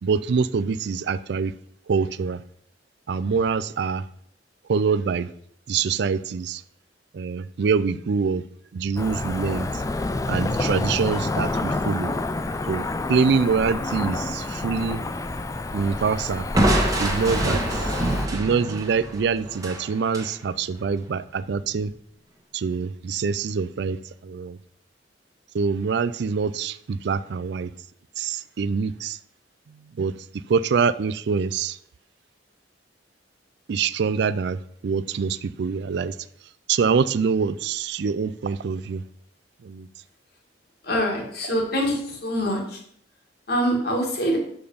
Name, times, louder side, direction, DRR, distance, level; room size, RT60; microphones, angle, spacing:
voice 1, 0.0-1.5 1.9-2.4 3.1-4.0 4.7-5.3 5.7-6.6 7.1-8.4 8.7-9.7 10.3-12.1 12.7-15.0 15.7-16.5 17.0-17.9 18.3-21.9 22.5-24.6 25.5-27.7 28.2-29.2 30.0-31.8 33.7-36.2 36.7-39.0 39.6-39.9, right 5 dB, 65° right, 15 dB, 0.4 m, -25 dB
Cricket / Motor vehicle (road), 9.0-18.3, left 2 dB, 20° left, 0.4 m, -28 dB
Crushing, 16.5-20.3, right 1 dB, 20° right, 1.2 m, -25 dB
voice 2, 40.8-42.8 43.5-44.4, equal, 60° left, 0 dB, 2.0 m, -24 dB
6.8 x 5.2 x 5.4 m, 0.66 s
head